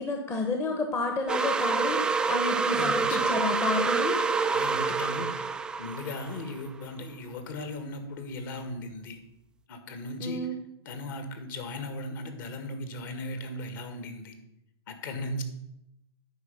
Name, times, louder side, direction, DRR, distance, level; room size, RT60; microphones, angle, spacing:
voice 1, 0.0-4.2 10.2-10.6, left 2 dB, 15° left, 3 dB, 1.0 m, -30 dB
sound 1, 1.3-6.6, right 4 dB, 5° right, 0.3 m, -27 dB
voice 2, 2.8-3.3 4.5-9.2 9.7-10.4 10.9-14.3 14.9-15.4, left 1 dB, 50° left, 7 dB, 1.9 m, -37 dB
9.7 x 4.9 x 7.0 m, 0.83 s
hypercardioid pair, 125°, 14 cm